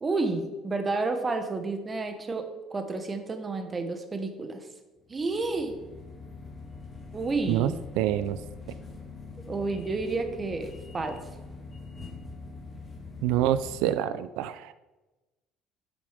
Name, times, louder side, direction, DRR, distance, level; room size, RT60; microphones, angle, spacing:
voice 1, 0.0-4.7 5.1-5.7 7.1-7.8 9.5-11.2, right 3 dB, 20° right, 7 dB, 1.0 m, -30 dB
sound 1, 5.0-13.8, left 3 dB, 25° left, 1.6 m, -43 dB
voice 2, 8.0-8.4 13.2-14.7, right 12 dB, 85° right, 12 dB, 0.3 m, -26 dB
8.3 x 6.2 x 4.9 m, 1.1 s
cardioid pair, 135°, 0 cm